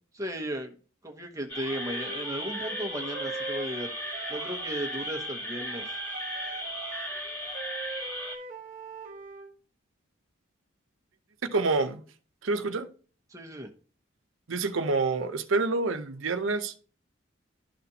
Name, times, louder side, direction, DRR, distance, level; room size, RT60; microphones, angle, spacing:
voice 1, 0.1-0.7 1.0-3.9 4.3-5.9 13.3-13.7, right 1 dB, 15° right, 1.0 m, -35 dB
sound 1, 1.5-8.4, left 1 dB, 10° left, 1.4 m, -36 dB
Wind instrument woodwind instrument, 1.7-5.4 5.6-9.5, right 3 dB, 40° right, 1.2 m, -41 dB
voice 2, 11.5-12.0 12.4-12.9 14.5-16.7, right 3 dB, 80° right, 0.7 m, -27 dB
12.0 x 4.2 x 2.8 m
head